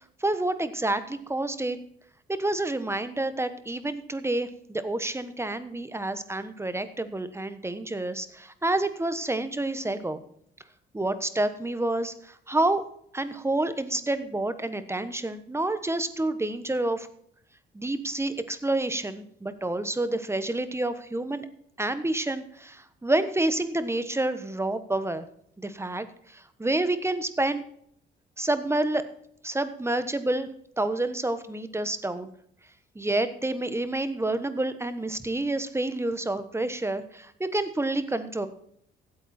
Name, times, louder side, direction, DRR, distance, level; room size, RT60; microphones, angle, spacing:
voice 1, 0.2-1.8 2.3-10.2 10.9-12.8 13.1-17.1 17.7-21.5 21.8-25.3 25.6-27.6 28.4-29.0 29.4-30.5 30.8-32.3 32.9-38.5, right 2 dB, 15° right, 11 dB, 1.2 m, -28 dB
15.5 x 8.9 x 4.3 m, 0.66 s
cardioid pair, 90°, 20 cm